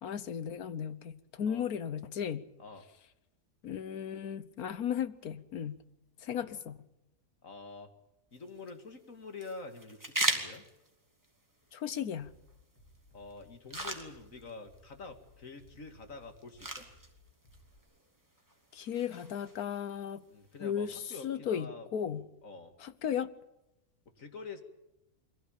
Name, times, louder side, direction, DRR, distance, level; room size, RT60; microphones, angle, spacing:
voice 1, 0.0-2.5 3.6-5.9 6.2-6.8 11.7-12.3 18.7-20.2 20.6-22.3 22.8-23.3, left 8 dB, 75° left, 1.5 m, -35 dB
voice 2, 7.4-7.9 8.3-10.6 13.1-16.8 20.3-22.7 24.2-24.6, left 4 dB, 60° left, 2.6 m, -47 dB
sound 1, 8.3-21.3, right 1 dB, 10° right, 2.7 m, -42 dB
Bass drum, 12.2-17.8, left 1 dB, 15° left, 5.4 m, -61 dB
23.0 x 17.0 x 9.0 m
omnidirectional pair, 1.6 m